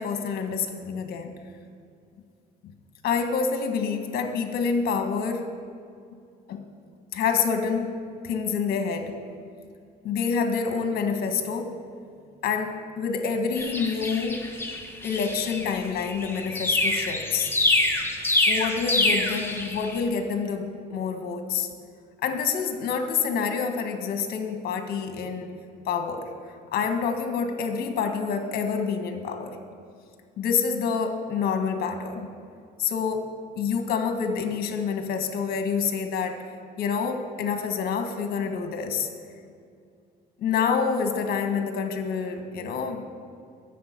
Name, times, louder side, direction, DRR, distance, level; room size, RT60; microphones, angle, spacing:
voice 1, 0.0-1.3 3.0-5.4 6.5-6.6 7.1-8.0 8.2-9.1 10.0-11.7 12.4-14.4 15.0-17.5 18.5-21.7 22.2-25.5 25.9-26.3 26.7-29.6 30.4-32.3 32.8-36.4 36.8-39.1 40.4-43.0, left 6 dB, 65° left, 6 dB, 1.4 m, -27 dB
sound 1, 13.6-20.0, left 2 dB, 15° left, 1.4 m, -26 dB
10.5 x 6.7 x 8.1 m, 2.3 s
cardioid pair, 110°, 17 cm